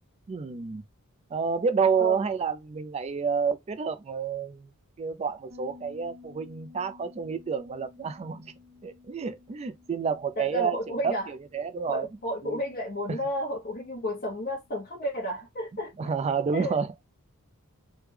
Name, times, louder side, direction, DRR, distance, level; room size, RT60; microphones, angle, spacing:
voice 1, 0.3-0.8 1.3-4.7 5.0-8.5 8.8-10.8 11.0-12.1 12.4-12.6 16.0-16.9, right 6 dB, 30° right, 0.3 m, -29 dB
Bass guitar, 5.5-14.9, left 4 dB, 85° right, 1.3 m, -55 dB
voice 2, 10.4-11.3 11.9-15.9 16.5-16.8, equal, 40° left, 0.9 m, -32 dB
3.3 x 2.2 x 3.2 m
head